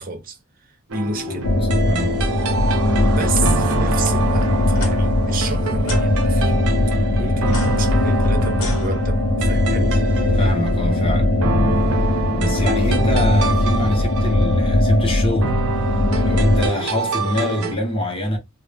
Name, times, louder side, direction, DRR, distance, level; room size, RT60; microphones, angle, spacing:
voice 1, 0.0-1.5 3.0-6.6 7.2-9.9, right 3 dB, 40° right, 0.5 m, -30 dB
sound 1, 0.9-17.8, right 4 dB, 85° right, 0.6 m, -27 dB
voice 2, 1.1-1.4 1.8-2.3 10.3-11.3 12.3-15.6 16.1-18.4, left 1 dB, 25° left, 0.6 m, -24 dB
sound 2, 1.4-16.7, left 1 dB, 70° left, 0.4 m, -19 dB
sound 3, 4.7-4.9 5.8-6.1 7.4-9.4, left 1 dB, 90° left, 1.0 m, -33 dB
2.0 x 2.0 x 3.2 m
head